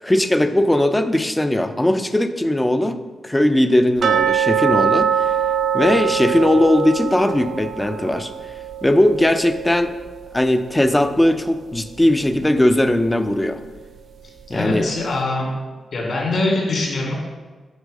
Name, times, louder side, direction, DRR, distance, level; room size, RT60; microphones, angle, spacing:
voice 1, 0.0-5.3 5.7-8.3 8.8-9.9 10.3-13.6 14.5-14.9, left 1 dB, 10° left, 9 dB, 0.5 m, -18 dB
sound 1, 4.0-10.9 11.1-11.2 11.8-11.9 12.4-12.5, right 8 dB, 65° right, 0.5 m, -23 dB
voice 2, 14.5-15.5 15.9-17.1, left 2 dB, 60° left, -2 dB, 2.7 m, -23 dB
8.2 x 4.5 x 6.4 m, 1.3 s
cardioid pair, 115°, 0 cm